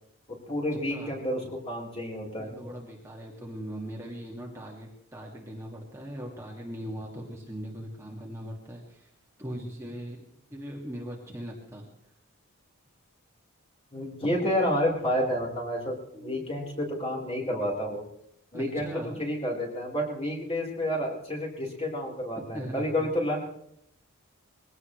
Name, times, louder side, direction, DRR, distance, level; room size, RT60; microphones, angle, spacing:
voice 1, 0.5-2.7 13.9-18.0 18.5-23.4, equal, 25° left, -1 dB, 4.2 m, -30 dB
voice 2, 2.4-9.1 9.4-11.9 16.1-16.7 18.5-19.2 22.5-23.1, equal, 10° right, -2 dB, 2.2 m, -40 dB
22.0 x 17.0 x 3.2 m, 0.74 s
head